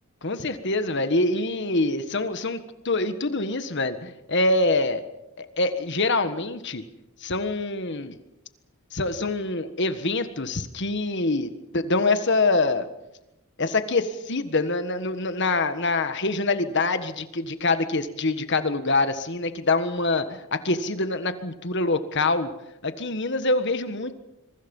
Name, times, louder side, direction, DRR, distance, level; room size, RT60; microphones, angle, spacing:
voice 1, 0.2-5.0 5.4-6.8 7.2-8.2 8.9-12.8 13.6-22.5 22.8-24.1, left 2 dB, 50° left, 10 dB, 1.5 m, -25 dB
26.5 x 23.5 x 5.5 m, 0.89 s
head